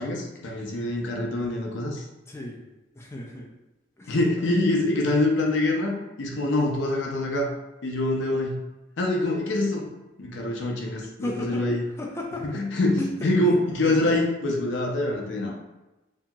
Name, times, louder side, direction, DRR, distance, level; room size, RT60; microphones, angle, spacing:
voice 1, 0.0-2.0 4.1-7.5 7.8-8.6 9.0-9.9 10.2-11.8 12.4-15.5, left 2 dB, 70° left, 0 dB, 0.5 m, -25 dB
voice 2, 2.3-2.6 3.0-3.5 4.0-4.2 11.2-12.6 13.0-14.2, left 1 dB, 15° left, -1 dB, 0.3 m, -35 dB
2.8 x 2.7 x 2.3 m, 1.0 s
head